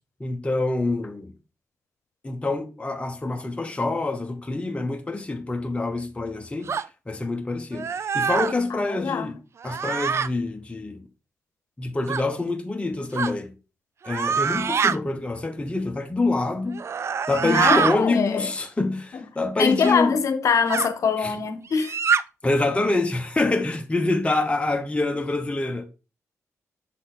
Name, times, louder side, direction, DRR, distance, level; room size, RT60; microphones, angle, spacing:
voice 1, 0.2-1.3 2.2-6.8 7.1-9.4 9.6-11.1 11.8-13.5 14.0-16.8 17.3-20.2 21.2-21.3 22.4-25.8, left 2 dB, 20° left, 1.0 m, -26 dB
sound 1, 6.7-6.9 7.7-8.5 9.6-10.3 12.1-12.2 13.1-13.3 14.0-15.0 16.7-18.0 19.8-20.0 20.7-20.9 21.7-22.2, right 6 dB, 55° right, 0.4 m, -24 dB
voice 2, 8.7-9.3 17.4-18.5 19.1-19.2 19.6-22.0, left 6 dB, 70° left, 0.9 m, -24 dB
6.5 x 3.9 x 4.0 m
cardioid pair, 75°, 6 cm